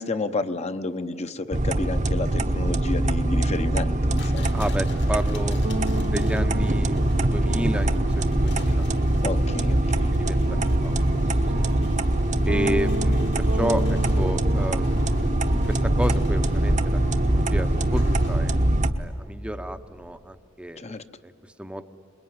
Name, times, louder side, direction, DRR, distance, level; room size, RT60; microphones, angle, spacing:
voice 1, 0.0-4.6 9.2-10.1 20.8-21.0, left 2 dB, 35° left, 9 dB, 0.8 m, -30 dB
sound 1, 1.5-18.9, right 1 dB, 35° right, 1.0 m, -23 dB
sound 2, 4.1-18.8, left 3 dB, 60° left, 1.7 m, -40 dB
voice 2, 4.5-8.9 9.4-10.9 11.6-11.7 12.5-15.2 15.7-18.6 19.0-20.8 21.2-21.8, equal, 5° right, 8 dB, 0.8 m, -32 dB
sound 3, 5.6-18.4, equal, 60° right, 1.6 m, -34 dB
27.0 x 21.5 x 9.5 m, 2.5 s
head